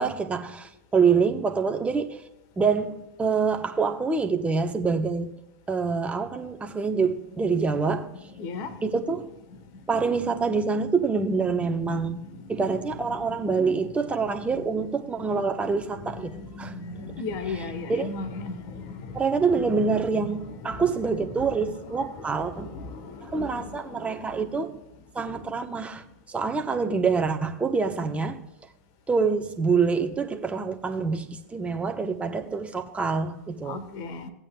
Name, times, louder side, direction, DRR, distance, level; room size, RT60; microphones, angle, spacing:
voice 1, 0.0-2.2 2.6-5.3 5.7-8.1 8.8-9.3 9.9-12.2 12.5-16.3 16.6-16.7 17.9-18.1 19.1-22.7 23.2-24.7 25.1-28.4 29.1-33.8, right 5 dB, 15° right, 1.0 m, -26 dB
voice 2, 8.1-8.8 11.8-13.5 14.2-14.3 14.6-14.9 15.3-21.0 21.4-24.3 33.6-34.3, left 3 dB, 45° left, 1.4 m, -38 dB
16.0 x 8.8 x 2.4 m
hypercardioid pair, 100°, 9 cm